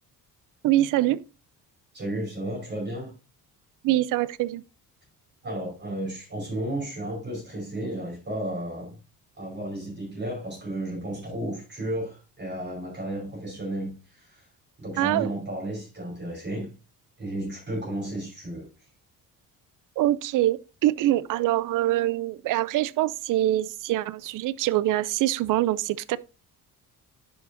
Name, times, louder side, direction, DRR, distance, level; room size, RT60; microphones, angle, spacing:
voice 1, 0.6-1.2 3.8-4.6 15.0-15.3 20.0-26.2, right 14 dB, 60° right, 0.5 m, -24 dB
voice 2, 1.9-3.1 5.4-9.0 9.4-14.5 14.8-16.7 17.2-18.7, right 1 dB, 30° right, 5.0 m, -33 dB
10.5 x 5.7 x 2.7 m
cardioid pair, 140°, 36 cm